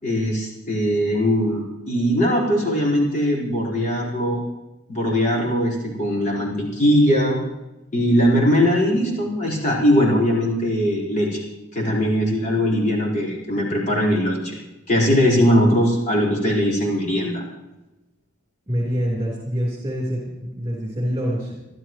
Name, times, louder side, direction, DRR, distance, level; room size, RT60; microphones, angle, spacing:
voice 1, 0.0-4.4 4.9-7.4 7.9-11.4 11.7-14.6 14.9-17.4, equal, 40° left, -4 dB, 4.7 m, -20 dB
voice 2, 18.7-21.5, equal, 20° right, -4 dB, 3.9 m, -25 dB
27.0 x 12.5 x 3.2 m, 1.0 s
head